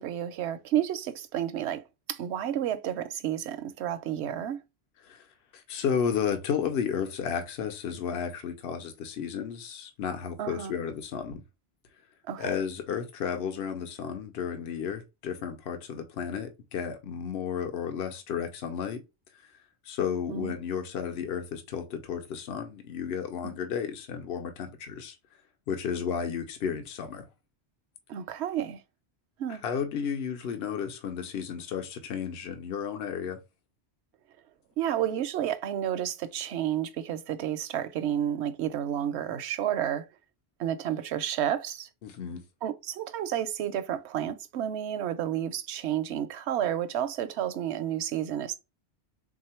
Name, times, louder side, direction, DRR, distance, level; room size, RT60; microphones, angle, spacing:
voice 1, 0.0-1.8 2.1-4.6 10.4-10.7 12.3-12.5 20.3-20.5 28.1-28.8 29.4-29.6 34.8-40.1 40.6-41.9 42.6-48.5, right 10 dB, 85° right, 0.9 m, -31 dB
voice 2, 5.5-11.4 12.4-19.0 19.4-19.5 19.8-25.2 25.7-27.3 29.5-33.4 42.0-42.4, left 7 dB, 70° left, 0.9 m, -33 dB
3.6 x 2.7 x 4.3 m
omnidirectional pair, 1.1 m